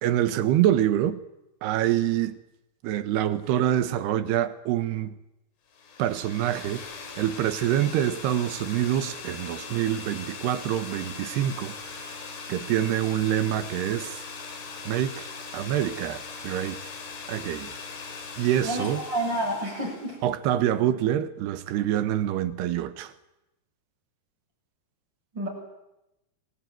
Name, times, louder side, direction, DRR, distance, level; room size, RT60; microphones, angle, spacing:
voice 1, 0.0-1.2 1.6-2.4 2.8-5.2 6.0-6.8 7.2-12.0 12.5-14.2 14.9-15.3 15.5-16.8 17.3-17.7 18.4-19.0 20.2-23.1, right 11 dB, 85° right, 3.4 m, -26 dB
sound 1, 5.7-20.2, left 4 dB, 85° left, 5.6 m, -40 dB
voice 2, 18.6-20.2 25.3-25.5, right 1 dB, 25° right, 7.9 m, -29 dB
27.0 x 21.0 x 9.3 m
omnidirectional pair, 4.7 m